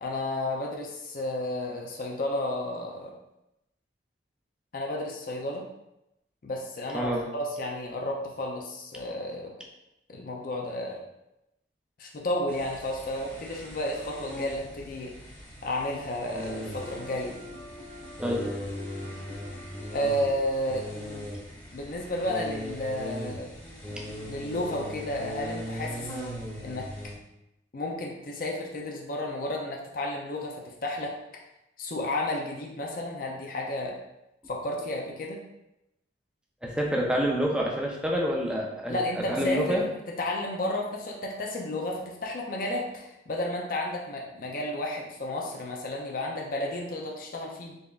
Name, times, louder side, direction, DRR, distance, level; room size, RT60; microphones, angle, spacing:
voice 1, 0.0-3.1 4.7-5.7 6.4-9.6 10.1-11.0 12.0-15.1 15.6-17.4 19.9-20.9 21.7-23.5 24.2-26.1 26.6-26.9 27.7-31.2 31.8-34.0 34.5-35.4 38.9-39.9 40.2-47.8, left 1 dB, 50° left, 0 dB, 0.5 m, -32 dB
voice 2, 6.9-7.2 18.2-18.4 24.0-24.1 36.6-39.0 39.3-39.8, equal, 5° right, -2 dB, 0.5 m, -27 dB
sound 1, 12.5-27.1, equal, 10° left, 1.0 m, -39 dB
sound 2, 16.4-22.2, equal, 80° left, 1.1 m, -46 dB
4.0 x 3.3 x 2.4 m, 0.89 s
head